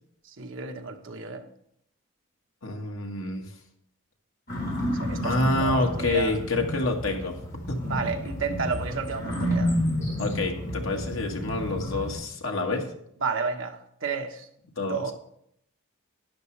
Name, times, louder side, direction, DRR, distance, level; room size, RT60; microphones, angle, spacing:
voice 1, 0.2-1.5 5.0-6.3 7.8-9.7 13.2-14.5 14.8-15.1, right 5 dB, 70° right, 1.2 m, -31 dB
voice 2, 2.6-3.4 5.2-7.4 7.7-7.8 10.2-12.9 14.8-15.1, left 2 dB, 85° left, 1.7 m, -27 dB
sound 1, 4.5-12.1, equal, 55° left, 4.2 m, -30 dB
12.0 x 9.9 x 3.3 m
head